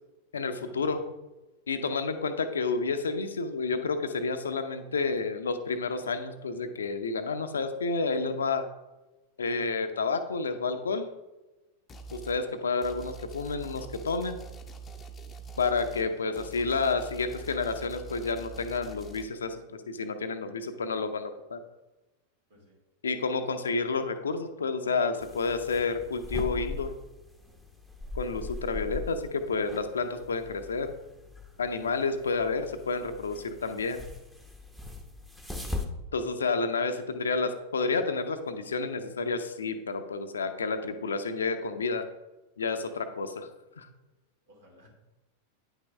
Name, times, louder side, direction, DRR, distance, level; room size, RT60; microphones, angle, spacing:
voice 1, 0.3-1.0 1.7-8.6 9.4-11.1 12.1-14.4 15.6-21.6 23.0-26.9 28.1-30.9 31.6-34.0 36.1-42.0 42.6-43.5 43.8-43.9, left 4 dB, 70° left, 8 dB, 0.7 m, -30 dB
sound 1, 11.9-12.4 12.8-19.3, right 4 dB, 20° left, 0.8 m, -44 dB
sound 2, 25.2-35.8, left 3 dB, ahead, 1.0 m, -40 dB
voice 2, 44.5-44.9, left 1 dB, 65° right, -2 dB, 2.8 m, -57 dB
9.7 x 5.5 x 3.5 m, 1.1 s
figure-of-eight pair, 90°, 0 cm